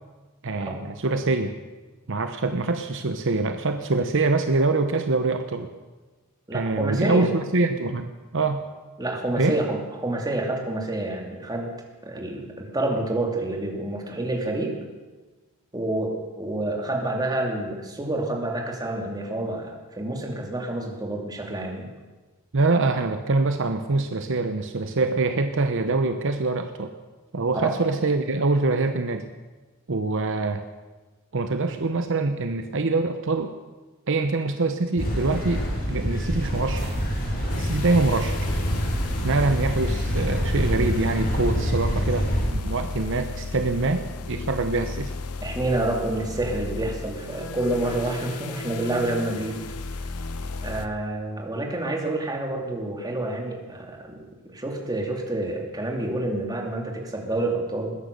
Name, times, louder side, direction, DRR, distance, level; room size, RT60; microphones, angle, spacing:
voice 1, 0.4-1.6 2.1-5.7 6.5-8.7 9.4-9.6 22.5-26.9 27.3-29.2 29.9-30.7 31.3-33.5 34.1-35.6 35.9-37.0 37.5-38.7 39.2-45.1, right 3 dB, 60° right, 7 dB, 0.9 m, -24 dB
voice 2, 6.5-7.3 9.0-11.7 12.0-14.7 15.7-21.9 27.6-27.8 45.4-49.6 50.6-54.2 54.4-58.0, right 2 dB, 15° right, 1 dB, 2.6 m, -28 dB
sound 1, 35.0-42.5, equal, 40° left, 5.5 m, -26 dB
sound 2, 37.5-50.9, left 3 dB, 85° left, 0.9 m, -34 dB
20.5 x 10.5 x 6.7 m, 1.2 s
head